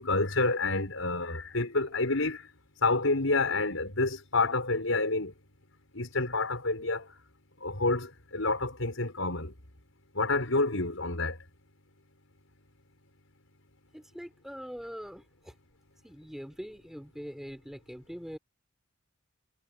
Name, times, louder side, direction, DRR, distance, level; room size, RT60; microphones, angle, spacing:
voice 1, 0.0-2.4 2.8-5.3 5.9-7.1 7.6-9.5 10.1-11.4, left 3 dB, 80° left, 5.3 m, -28 dB
voice 2, 13.9-15.5 16.0-18.4, equal, ahead, 3.9 m, -43 dB
head